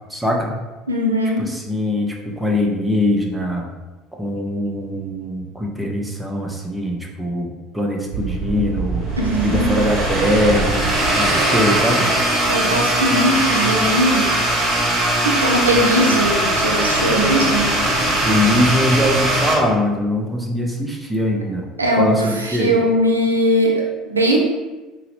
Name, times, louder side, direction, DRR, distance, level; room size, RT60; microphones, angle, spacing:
voice 1, 0.1-0.5 1.4-3.7 4.1-9.1 9.4-10.9 11.2-12.1 18.2-21.7 22.0-22.7, left 1 dB, 5° right, 0 dB, 0.6 m, -21 dB
voice 2, 0.9-1.5 9.2-9.8 12.5-14.3 15.2-17.7 21.8-24.4, equal, 90° right, 0 dB, 0.4 m, -19 dB
sound 1, 8.1-19.6, right 1 dB, 45° right, 0.9 m, -20 dB
4.0 x 2.0 x 2.8 m, 1.2 s
figure-of-eight pair, 65°, 0 cm